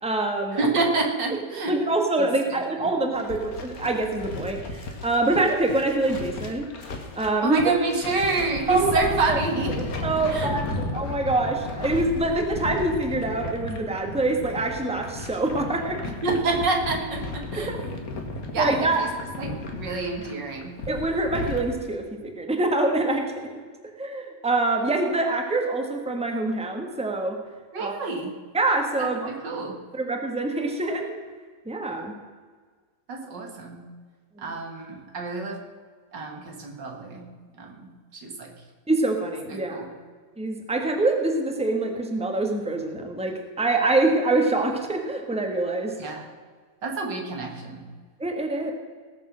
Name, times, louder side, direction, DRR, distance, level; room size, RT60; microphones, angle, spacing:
voice 1, 0.0-0.6 1.7-6.7 7.1-7.6 8.7-8.9 9.3-9.4 10.0-16.0 17.7-17.8 18.6-19.0 20.9-23.5 24.0-27.4 27.8-27.9 28.5-29.3 29.9-31.1 31.6-32.2 38.9-39.8 40.4-45.9 48.2-48.7, right 2 dB, 5° right, 3 dB, 1.4 m, -25 dB
voice 2, 0.5-1.7 2.2-2.6 7.4-9.7 10.3-10.5 16.2-17.7 18.5-19.1 19.4-20.7 27.7-28.3 29.0-29.8 33.1-33.8 34.4-35.6 36.1-37.3 37.6-38.5 39.5-39.9 46.0-46.2 46.8-47.8, right 3 dB, 90° right, 2 dB, 2.6 m, -28 dB
sound 1, 3.1-21.6, left 2 dB, 55° left, 1.9 m, -34 dB
19.0 x 6.9 x 6.3 m, 1.5 s
omnidirectional pair, 1.9 m